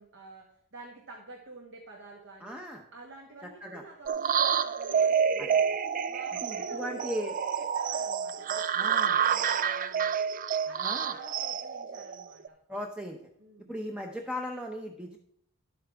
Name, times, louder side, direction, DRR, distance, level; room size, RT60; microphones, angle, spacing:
voice 1, 0.0-2.6 2.9-5.7 6.1-10.2 10.7-12.6 13.4-13.7, right 3 dB, 55° right, 1 dB, 1.4 m, -49 dB
voice 2, 2.4-2.8 3.6-3.8 5.4-5.5 6.4-7.4 8.7-9.2 10.8-11.1 12.7-13.2 13.7-15.2, equal, 5° right, 2 dB, 0.7 m, -37 dB
sound 1, 4.1-12.5, right 7 dB, 40° right, 0.4 m, -28 dB
11.5 x 8.6 x 3.5 m, 0.70 s
head